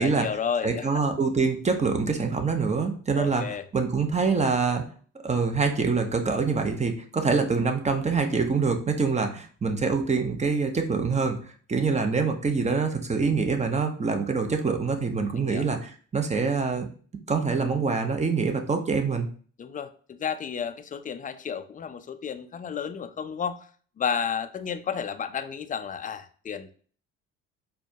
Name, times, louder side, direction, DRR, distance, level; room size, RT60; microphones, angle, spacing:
voice 1, 0.0-1.0 3.2-3.6 15.3-15.7 19.6-23.7 24.0-26.7, left 7 dB, 25° left, 10 dB, 0.4 m, -32 dB
voice 2, 0.6-4.8 5.2-16.9 17.3-19.3, right 4 dB, 20° right, 6 dB, 0.7 m, -25 dB
4.3 x 2.3 x 2.7 m, 0.44 s
hypercardioid pair, 55°, 36 cm